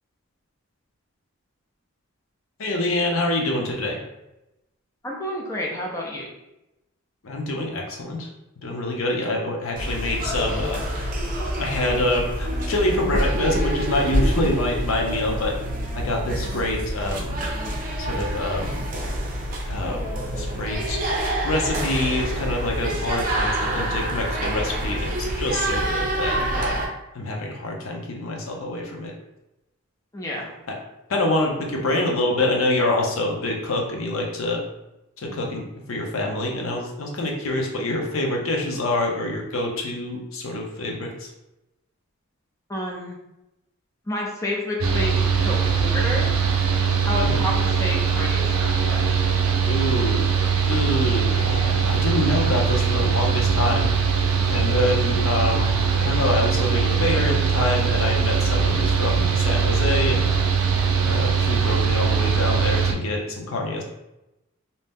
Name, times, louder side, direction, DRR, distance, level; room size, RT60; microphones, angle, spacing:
voice 1, 2.6-4.0 7.2-8.3 8.6-11.1 11.6-15.5 15.9-17.4 18.0-18.8 19.7-20.0 20.3-21.0 21.4-26.9 27.1-29.1 31.1-34.6 35.2-35.6 35.9-41.3 47.2-47.4 49.7-50.3 50.7-53.9 54.5-60.3 61.0-63.8, left 1 dB, 70° left, 0 dB, 0.6 m, -26 dB
voice 2, 5.0-6.2 30.1-30.5 42.7-43.2 44.1-46.3 47.1-49.2, left 1 dB, 15° left, -2 dB, 0.4 m, -30 dB
sound 1, 9.8-26.9, right 1 dB, 40° right, 0.6 m, -26 dB
Mechanical fan, 44.8-62.9, right 6 dB, 90° right, 0.5 m, -21 dB
2.7 x 2.1 x 3.4 m, 0.92 s
head